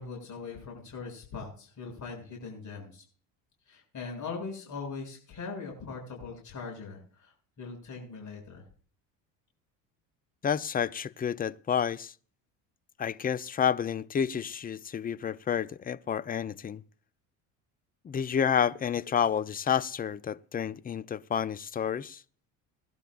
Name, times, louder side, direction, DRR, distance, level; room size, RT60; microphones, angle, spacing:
voice 1, 0.0-3.0 3.7-8.7, left 4 dB, 45° left, 7.5 m, -41 dB
voice 2, 10.4-12.1 13.0-16.8 18.0-22.2, left 8 dB, 20° left, 0.6 m, -30 dB
19.5 x 12.0 x 2.5 m
supercardioid pair, 80°, 40 cm